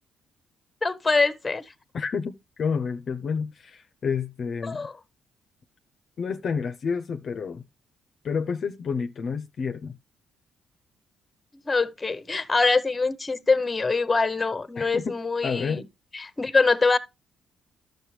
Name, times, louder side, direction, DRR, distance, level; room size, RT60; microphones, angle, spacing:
voice 1, 0.8-1.6 4.6-4.9 11.7-15.8 16.1-17.0, left 3 dB, 20° left, 0.9 m, -24 dB
voice 2, 1.9-4.9 6.2-7.6 8.2-10.0 14.8-15.2 15.4-15.9, left 5 dB, 55° left, 0.6 m, -29 dB
12.0 x 6.6 x 3.2 m
cardioid pair, 90°, 0 cm